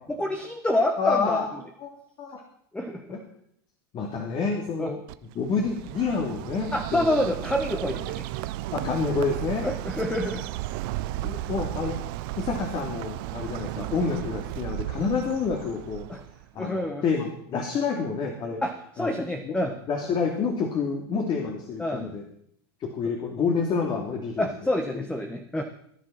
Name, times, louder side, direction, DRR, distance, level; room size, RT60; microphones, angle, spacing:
voice 1, 0.1-1.4 2.7-3.1 4.8-4.9 6.7-8.5 9.6-10.4 16.1-16.2 16.6-17.0 18.6-19.8 21.8-22.1 24.4-25.6, left 1 dB, 10° left, 5 dB, 1.5 m, -27 dB
voice 2, 1.0-1.5 1.8-2.4 3.1-3.2 3.9-5.0 5.3-7.1 8.7-9.7 11.0-12.0 12.3-16.1 16.5-18.6 19.0-19.1 19.4-19.6 19.9-22.2 22.8-24.5, left 5 dB, 35° left, 1 dB, 3.1 m, -28 dB
Bird, 5.1-16.5, right 16 dB, 60° right, 0.9 m, -34 dB
17.5 x 10.0 x 6.0 m, 0.71 s
supercardioid pair, 115°, 13 cm